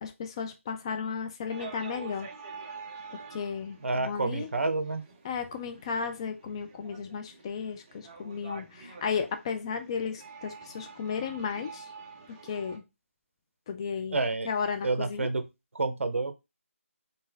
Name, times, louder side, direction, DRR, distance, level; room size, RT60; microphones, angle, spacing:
voice 1, 0.0-2.3 3.1-4.5 5.2-11.9 12.4-12.8 13.7-14.2 14.4-15.3, left 6 dB, 20° left, 7 dB, 0.5 m, -34 dB
sound 1, 1.5-12.8, right 4 dB, 20° right, 0.7 m, -47 dB
voice 2, 3.8-5.0 14.1-14.5 14.8-15.4 15.7-16.3, right 3 dB, 60° right, 10 dB, 0.9 m, -29 dB
4.4 x 3.4 x 3.4 m, 0.24 s
figure-of-eight pair, 165°, 8 cm